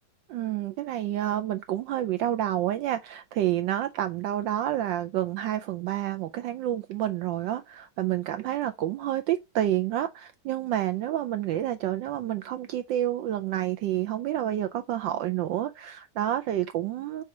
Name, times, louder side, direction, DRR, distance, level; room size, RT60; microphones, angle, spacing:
voice 1, 0.3-17.2, right 12 dB, 75° right, 1.1 m, -29 dB
4.8 x 4.2 x 5.7 m
omnidirectional pair, 2.3 m